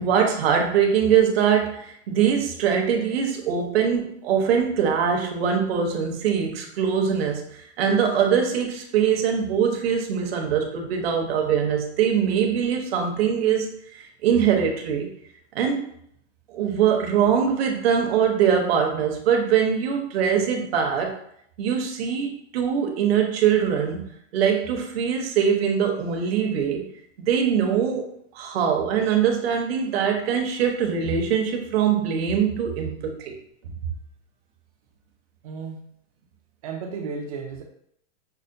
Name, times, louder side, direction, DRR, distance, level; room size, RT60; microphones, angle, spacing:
voice 1, 0.0-15.1 15.5-15.8 16.5-21.2 21.6-26.9 27.2-28.1 28.3-33.4, right 7 dB, 60° right, 2 dB, 0.8 m, -22 dB
voice 2, 35.4-35.8 36.6-37.6, right 5 dB, 30° right, 3 dB, 0.4 m, -33 dB
5.5 x 2.1 x 2.5 m, 0.69 s
supercardioid pair, 170°, 36 cm